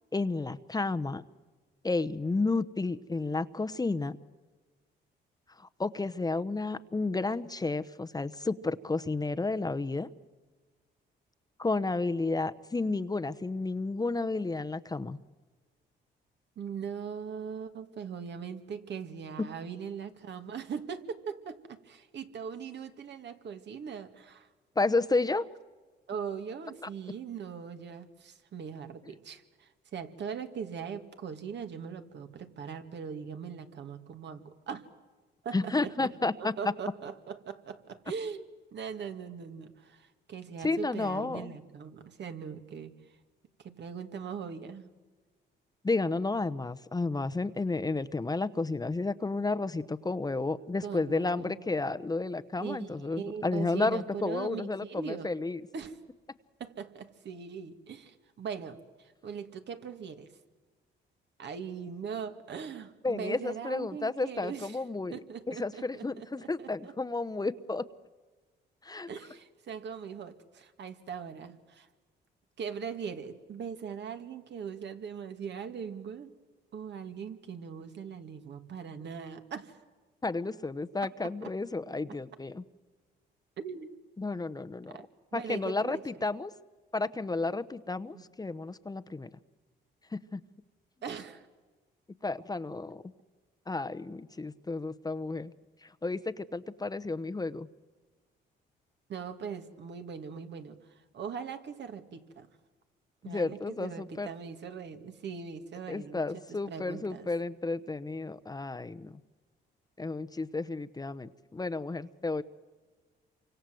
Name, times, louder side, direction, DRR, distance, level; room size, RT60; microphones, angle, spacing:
voice 1, 0.1-1.2 1.8-4.2 5.8-10.1 11.6-15.2 24.8-25.5 35.5-36.5 40.6-41.5 45.8-55.6 63.0-65.2 65.5-67.8 68.8-69.1 80.2-82.6 84.2-85.0 85.3-86.5 86.9-89.3 90.1-90.4 92.2-93.0 93.7-95.5 95.8-97.7 103.3-104.3 105.9-109.1 110.0-112.4, left 3 dB, 20° left, 11 dB, 0.9 m, -32 dB
voice 2, 16.6-24.5 26.1-34.9 35.4-43.2 43.6-44.9 50.8-51.6 52.6-55.3 55.7-56.0 56.6-60.3 61.4-64.8 65.1-66.9 69.1-71.9 72.6-76.3 76.7-79.8 81.2-81.5 83.6-83.9 84.9-85.1 85.3-86.0 88.1-88.3 91.0-91.5 99.1-102.5 103.2-107.3, right 6 dB, 60° right, 7 dB, 2.3 m, -40 dB
28.5 x 25.0 x 7.8 m, 1.3 s
cardioid pair, 90°, 20 cm